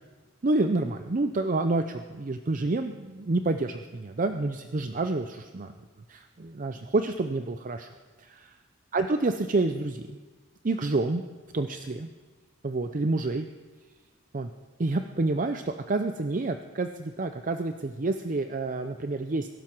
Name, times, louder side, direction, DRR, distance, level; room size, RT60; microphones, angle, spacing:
voice 1, 0.4-5.7 6.1-7.9 8.2-8.3 8.9-10.2 10.6-11.2 11.5-12.1 12.6-13.5 14.3-14.5 14.8-19.5, right 2 dB, 45° right, 7 dB, 0.6 m, -28 dB
22.0 x 12.0 x 4.5 m, 1.4 s
head